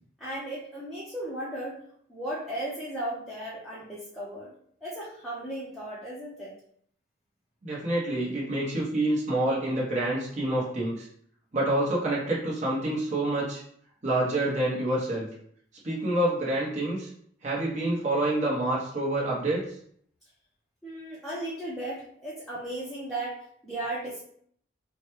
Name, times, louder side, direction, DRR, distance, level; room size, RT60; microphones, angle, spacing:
voice 1, 0.2-1.8 2.1-4.5 4.8-6.5 10.6-10.7 20.8-23.4 23.6-24.2, right 1 dB, ahead, -8 dB, 0.6 m, -36 dB
voice 2, 7.6-11.1 11.5-13.6 14.0-15.3 15.8-17.1 17.4-19.6, right 1 dB, 40° right, -6 dB, 1.0 m, -27 dB
4.7 x 2.2 x 3.1 m, 0.64 s
head